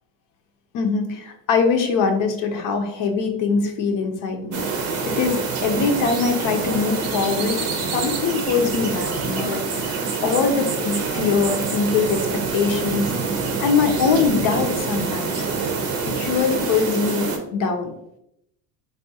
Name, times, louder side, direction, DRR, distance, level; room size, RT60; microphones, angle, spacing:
voice 1, 0.7-4.6 5.0-13.1 13.6-15.5 16.2-17.9, left 5 dB, 50° left, 5 dB, 0.7 m, -23 dB
sound 1, 4.5-17.4, right 4 dB, 40° right, 0.7 m, -26 dB
3.5 x 2.4 x 2.7 m, 0.79 s
supercardioid pair, 115°, 42 cm